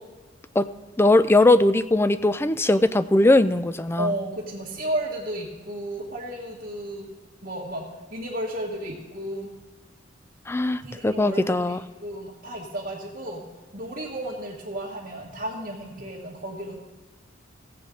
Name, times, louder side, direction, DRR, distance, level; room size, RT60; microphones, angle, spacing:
voice 1, 1.0-4.1 10.5-11.8, left 2 dB, 10° left, 13 dB, 0.3 m, -20 dB
voice 2, 4.0-7.1 7.4-7.8 8.1-9.5 10.8-13.5 13.7-16.8, right 1 dB, 45° right, -6 dB, 1.5 m, -33 dB
16.5 x 8.2 x 3.8 m, 1.3 s
head